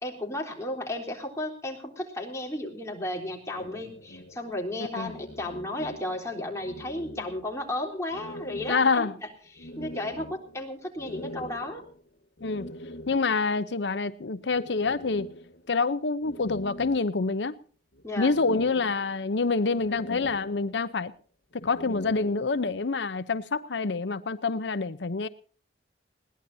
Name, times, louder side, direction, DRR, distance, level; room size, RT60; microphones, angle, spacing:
voice 1, 0.0-9.1 9.5-11.8 18.0-18.3, left 1 dB, 15° left, 3.7 m, -34 dB
sound 1, 3.5-6.3 6.6-7.7 8.1-13.5 14.5-15.8 16.2-17.5 17.9-19.4 19.7-21.1 21.5-22.8, left 1 dB, 65° left, 1.2 m, -43 dB
voice 2, 8.7-9.1 12.4-12.7 13.1-15.3 15.7-17.6 18.2-21.1 21.6-25.3, left 4 dB, 85° left, 0.8 m, -27 dB
21.0 x 18.0 x 2.7 m
head